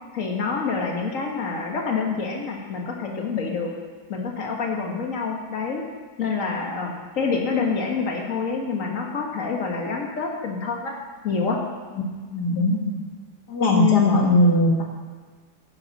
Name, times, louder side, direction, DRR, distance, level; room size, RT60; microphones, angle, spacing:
voice 1, 0.1-3.7 4.1-5.8 6.2-10.9 11.2-11.6 13.7-14.1, left 5 dB, 55° left, 0 dB, 1.9 m, -26 dB
voice 2, 12.3-13.0 13.5-14.8, left 1 dB, 80° left, 0 dB, 2.2 m, -20 dB
10.5 x 10.5 x 4.2 m, 1.4 s
omnidirectional pair, 1.7 m